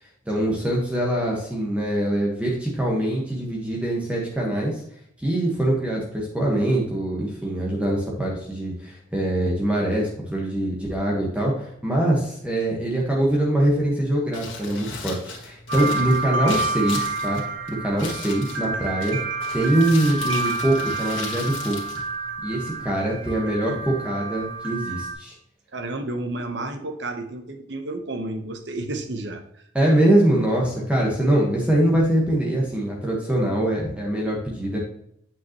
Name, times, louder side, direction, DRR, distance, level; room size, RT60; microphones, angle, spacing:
voice 1, 0.3-4.8 5.2-17.4 17.7-19.2 19.5-21.8 22.4-25.3 29.7-34.8, right 1 dB, 5° right, -3 dB, 1.4 m, -23 dB
Crumpling crinkling, 14.2-22.8, left 4 dB, 80° left, 1.9 m, -38 dB
sound 1, 15.7-25.1, right 3 dB, 90° right, 1.7 m, -29 dB
voice 2, 25.7-29.6, right 2 dB, 60° right, 6 dB, 1.0 m, -31 dB
8.8 x 5.7 x 3.0 m, 0.72 s
head